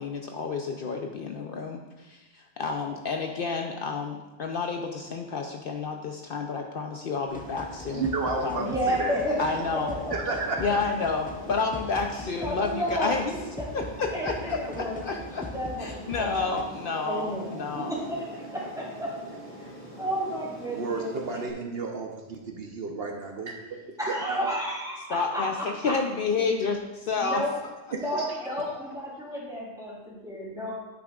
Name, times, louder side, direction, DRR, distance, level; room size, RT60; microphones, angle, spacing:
voice 1, 0.0-8.1 8.4-8.7 9.4-9.9 10.6-13.2 13.7-15.5 15.8-17.9 25.1-27.7 28.1-28.9, left 4 dB, 60° left, 3 dB, 0.8 m, -30 dB
sound 1, 7.3-16.6, left 1 dB, 10° left, 0.4 m, -42 dB
Aircraft, 7.3-21.5, right 1 dB, 85° right, 2.3 m, -44 dB
voice 2, 7.9-9.2 10.1-10.6 20.7-23.5 24.3-24.5 27.9-28.3, right 4 dB, 65° right, 2 dB, 1.0 m, -32 dB
voice 3, 8.5-9.3 9.9-11.0 12.4-13.5 14.1-16.6 17.1-19.1 19.6-19.7 20.0-21.8 24.0-25.9 26.4-26.6 27.2-27.5 27.9-30.7, equal, 5° right, -7 dB, 3.0 m, -32 dB
9.6 x 8.6 x 2.4 m, 1.1 s
omnidirectional pair, 1.1 m